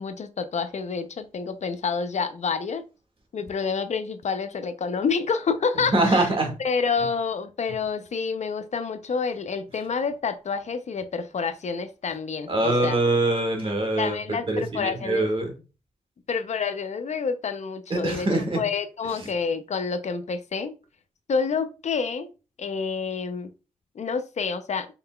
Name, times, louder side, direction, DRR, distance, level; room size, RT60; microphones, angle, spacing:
voice 1, 0.0-2.8 3.3-6.3 6.6-13.0 14.0-15.3 16.3-18.3 18.6-20.7 21.3-22.3 22.6-23.5 24.0-24.9, left 5 dB, 55° left, 0.5 m, -28 dB
voice 2, 5.9-6.5 12.5-14.2 14.5-15.5 17.9-18.6, right 2 dB, 40° right, 1.4 m, -23 dB
3.8 x 3.7 x 2.2 m
cardioid pair, 60°, 14 cm